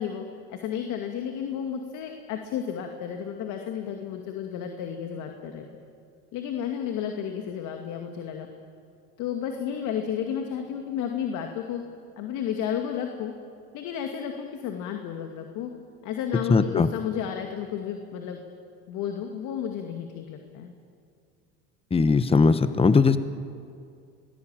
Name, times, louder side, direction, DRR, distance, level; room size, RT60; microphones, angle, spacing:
voice 1, 0.0-5.7 6.3-8.5 9.2-11.8 12.2-13.3 13.7-15.7 16.0-18.4 18.9-20.7, left 8 dB, 60° left, 4 dB, 2.3 m, -32 dB
voice 2, 16.5-16.9 21.9-23.2, left 4 dB, 15° left, 12 dB, 1.2 m, -19 dB
25.5 x 19.5 x 9.0 m, 2.3 s
supercardioid pair, 90°, 33 cm